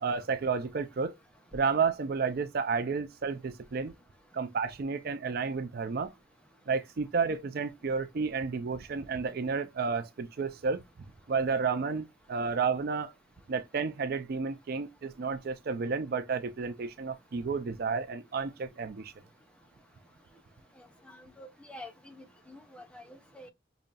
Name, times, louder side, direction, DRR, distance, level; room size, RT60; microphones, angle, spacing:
voice 1, 0.0-1.2 1.5-3.9 4.3-6.1 6.7-10.8 11.3-13.1 13.5-19.1, right 5 dB, 55° right, 0.4 m, -31 dB
voice 2, 21.1-23.5, left 1 dB, 5° left, 0.7 m, -48 dB
5.2 x 2.7 x 2.3 m
head